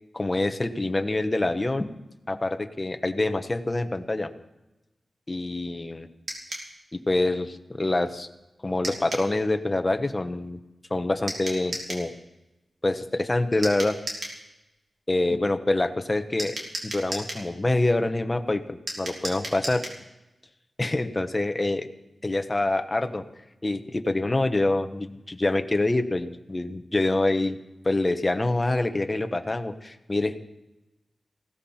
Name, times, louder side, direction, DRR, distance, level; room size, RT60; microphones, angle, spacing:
voice 1, 0.1-1.9 2.3-4.3 5.3-6.1 6.9-8.3 8.6-10.6 10.9-12.1 12.8-14.0 15.1-16.5 16.8-19.9 20.8-21.9 22.2-23.2 23.6-27.6 27.8-30.4, left 2 dB, 25° left, 7 dB, 1.1 m, -26 dB
sound 1, 6.3-6.7 8.8-9.3 11.3-12.1 13.6-14.4 16.4-17.5 18.9-20.0, right 1 dB, 70° right, 3.6 m, -34 dB
19.0 x 17.0 x 4.4 m, 0.98 s
wide cardioid pair, 115°, 0 cm